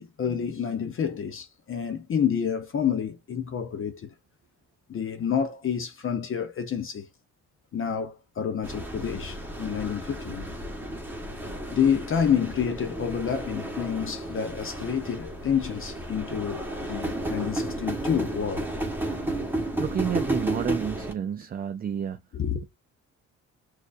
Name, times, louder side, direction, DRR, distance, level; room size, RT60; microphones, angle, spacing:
voice 1, 0.0-4.1 4.9-7.1 7.7-10.5 11.7-18.7 22.3-22.6, left 7 dB, 45° left, 0.7 m, -28 dB
sound 1, 8.6-21.1, right 1 dB, 5° right, 1.1 m, -33 dB
voice 2, 19.8-22.2, right 8 dB, 30° right, 0.4 m, -30 dB
6.3 x 2.5 x 2.5 m
cardioid pair, 90°, 30 cm